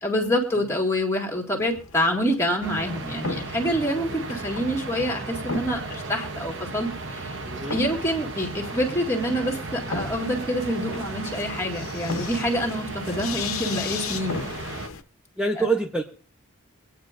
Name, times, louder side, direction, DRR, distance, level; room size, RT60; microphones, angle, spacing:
voice 1, 0.0-7.3 7.7-14.4 15.6-15.7, equal, 10° left, -1 dB, 1.9 m, -26 dB
sound 1, 1.6-15.0, left 4 dB, 80° left, 0.9 m, -37 dB
sound 2, 2.6-14.9, right 3 dB, 55° right, 0.9 m, -35 dB
voice 2, 7.4-7.8 15.4-16.0, right 3 dB, 5° right, 1 dB, 0.7 m, -25 dB
23.5 x 9.2 x 2.5 m, 0.43 s
head